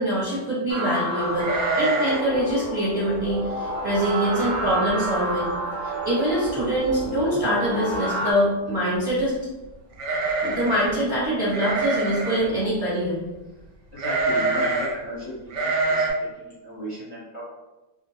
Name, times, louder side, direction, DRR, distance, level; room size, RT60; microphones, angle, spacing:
voice 1, 0.0-5.5 5.8-9.4 10.4-13.2, right 1 dB, 15° right, -9 dB, 0.9 m, -24 dB
sound 1, 0.7-8.3, right 1 dB, 65° right, 0.9 m, -30 dB
sound 2, 1.4-2.4 2.6-2.7 3.2-3.5 4.0-4.1 4.4-4.9 5.2-5.3 6.4-6.5 6.8-7.3 9.9-10.9 11.5-12.5 14.0-14.9 15.5-16.1, right 3 dB, 85° right, 0.6 m, -25 dB
voice 2, 13.9-15.3 15.6-17.4, left 1 dB, 55° left, -10 dB, 0.9 m, -35 dB
2.8 x 2.5 x 2.7 m, 1.1 s
omnidirectional pair, 1.9 m